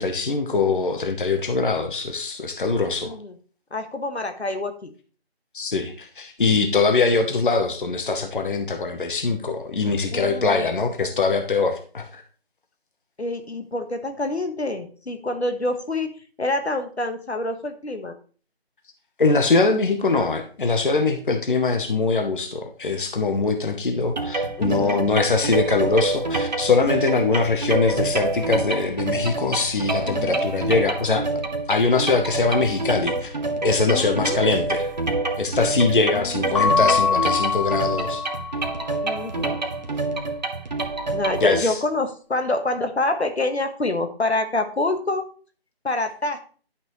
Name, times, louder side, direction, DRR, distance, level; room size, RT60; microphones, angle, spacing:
voice 1, 0.0-3.1 5.5-12.2 19.2-31.2 31.7-33.3 33.6-34.9 35.4-38.2 41.4-41.8, left 4 dB, 50° left, 6 dB, 1.0 m, -22 dB
voice 2, 3.0-3.4 3.7-4.9 10.1-10.7 13.2-16.1 16.4-18.1 24.6-25.1 30.0-30.5 33.8-34.4 36.0-37.0 39.0-39.6 41.1-45.3 45.8-46.4, left 2 dB, 85° left, 7 dB, 1.4 m, -27 dB
sound 1, 24.2-41.6, right 2 dB, 40° right, 1.0 m, -27 dB
Keyboard (musical) / Bell, 36.5-39.0, left 6 dB, 30° left, 1.4 m, -23 dB
11.0 x 6.0 x 3.1 m, 0.40 s
figure-of-eight pair, 165°, 32 cm